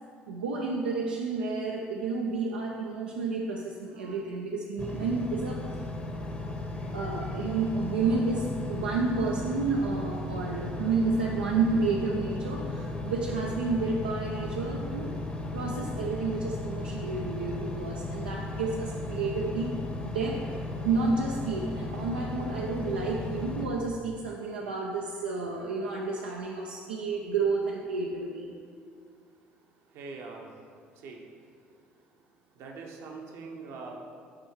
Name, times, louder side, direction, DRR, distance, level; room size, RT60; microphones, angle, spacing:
voice 1, 0.3-5.8 6.7-15.2 15.5-19.7 20.0-28.5, right 4 dB, 85° right, -1 dB, 0.4 m, -30 dB
Engine, 4.8-23.7, left 2 dB, 20° left, 0.8 m, -35 dB
voice 2, 29.9-30.5 30.9-31.5 32.5-34.0, right 4 dB, 60° right, 1 dB, 0.8 m, -43 dB
6.4 x 3.5 x 4.5 m, 2.2 s
hypercardioid pair, 55°, 5 cm